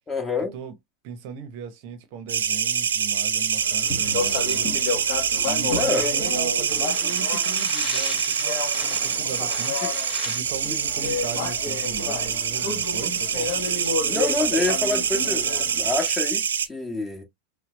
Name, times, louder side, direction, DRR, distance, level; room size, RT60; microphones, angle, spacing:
voice 1, 0.1-0.5 5.8-6.0 13.8-17.2, left 3 dB, 15° left, 1.7 m, -27 dB
voice 2, 1.0-4.7 5.4-13.5, right 7 dB, 45° right, 0.9 m, -37 dB
sound 1, 2.3-16.7, right 7 dB, 65° right, 0.5 m, -25 dB
Speech, 3.6-16.0, left 4 dB, 35° left, 1.7 m, -31 dB
5.8 x 2.2 x 3.0 m
figure-of-eight pair, 90°, 0 cm